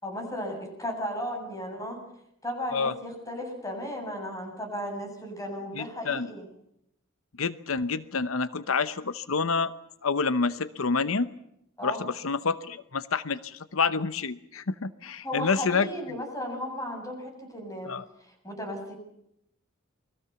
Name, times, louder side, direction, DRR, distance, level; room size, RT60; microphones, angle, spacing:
voice 1, 0.0-2.0 2.4-6.5 11.8-12.0 15.2-17.9 18.2-19.0, equal, 15° left, 3 dB, 7.7 m, -35 dB
voice 2, 5.7-6.3 7.4-9.7 10.0-11.3 11.8-16.2 17.9-18.0, left 4 dB, 85° left, 14 dB, 0.9 m, -28 dB
29.0 x 21.5 x 7.0 m, 0.77 s
head